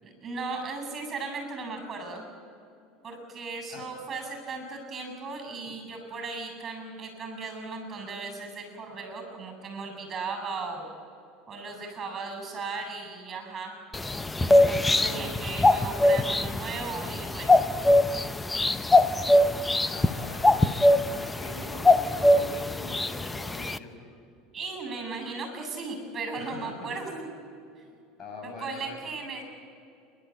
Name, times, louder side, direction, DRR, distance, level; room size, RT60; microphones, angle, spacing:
voice 1, 0.0-2.3 3.0-10.9 11.5-13.8 14.4-17.6 24.5-27.2 28.4-29.4, right 4 dB, 35° right, 5 dB, 7.6 m, -37 dB
sound 1, 13.9-23.8, left 1 dB, 15° left, 0.8 m, -23 dB
voice 2, 19.9-24.1 26.3-27.0 28.2-29.0, left 3 dB, 40° left, 2 dB, 6.4 m, -43 dB
28.5 x 12.5 x 8.7 m, 2.5 s
hypercardioid pair, 90°, 0 cm